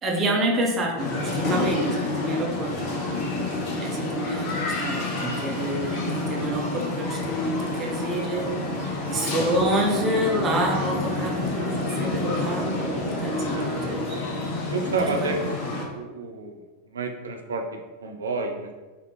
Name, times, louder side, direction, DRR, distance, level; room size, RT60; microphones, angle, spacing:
voice 1, 0.0-2.8 3.8-14.2 14.9-15.0 15.2-15.3, right 1 dB, 25° right, -1 dB, 0.7 m, -28 dB
sound 1, 1.0-15.8, left 2 dB, 45° left, 0.7 m, -28 dB
voice 2, 8.8-9.1 13.5-14.0 14.7-15.5 15.9-16.6 16.8-18.7, right 4 dB, 70° right, 3 dB, 0.4 m, -31 dB
3.3 x 2.4 x 3.3 m, 1.3 s
figure-of-eight pair, 90°, 0 cm